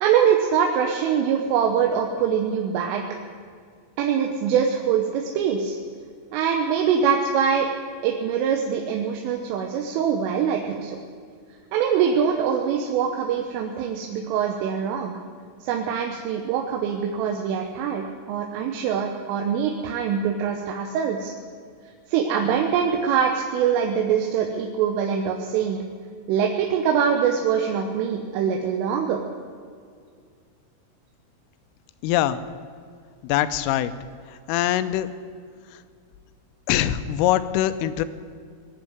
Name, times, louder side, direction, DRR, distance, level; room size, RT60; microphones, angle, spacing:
voice 1, 0.0-3.0 4.0-5.8 6.3-7.7 8.0-11.0 11.7-15.2 15.6-21.3 22.1-25.8 26.3-29.2, right 7 dB, 85° right, 2 dB, 3.5 m, -23 dB
voice 2, 32.0-32.4 33.2-33.9 34.5-35.1 36.7-38.0, left 12 dB, 85° left, 12 dB, 3.3 m, -22 dB
21.0 x 7.3 x 9.2 m, 2.1 s
omnidirectional pair, 5.7 m